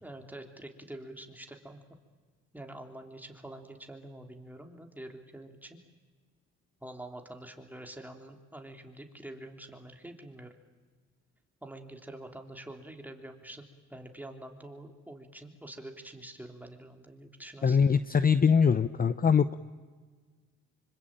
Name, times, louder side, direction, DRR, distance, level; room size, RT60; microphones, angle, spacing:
voice 1, 0.0-1.8 2.5-5.8 6.8-10.5 11.6-13.6 13.9-18.0, right 1 dB, 5° right, 3 dB, 3.3 m, -46 dB
voice 2, 17.6-19.6, left 6 dB, 30° left, 14 dB, 0.7 m, -23 dB
26.0 x 24.5 x 8.9 m, 1.5 s
cardioid pair, 90°, 30 cm